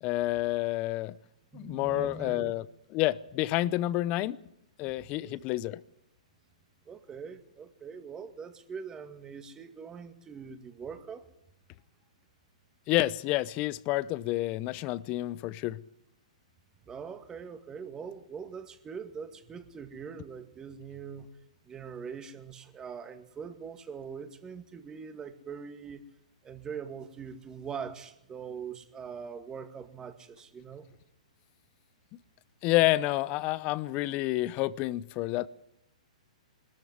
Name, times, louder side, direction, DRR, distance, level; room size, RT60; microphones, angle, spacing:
voice 1, 0.0-1.1 1.5-2.6 2.9-4.4 4.8-5.8 12.9-15.8 32.6-35.5, left 17 dB, 35° left, 0.7 m, -29 dB
voice 2, 1.5-2.5 5.2-5.6 6.9-11.3 16.8-21.3 21.6-26.0 26.4-30.9, right 6 dB, 15° right, 2.2 m, -42 dB
21.5 x 13.5 x 9.5 m
hypercardioid pair, 130°, 4 cm